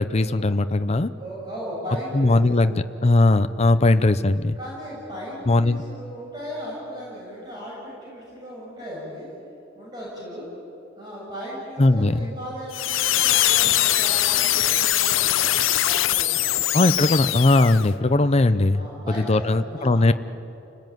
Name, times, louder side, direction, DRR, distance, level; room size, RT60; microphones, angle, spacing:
voice 1, 0.0-1.1 2.1-4.6 5.5-5.8 11.8-12.2 16.7-18.8 19.2-20.1, left 2 dB, 35° left, 11 dB, 0.7 m, -19 dB
voice 2, 1.2-2.7 4.6-9.3 9.8-10.5 11.0-15.6 15.8-16.7 18.7-19.4 19.7-20.0, equal, 20° right, -6 dB, 7.2 m, -36 dB
sound 1, 12.7-17.9, left 13 dB, 85° left, 0.8 m, -22 dB
29.5 x 19.5 x 9.3 m, 2.8 s
head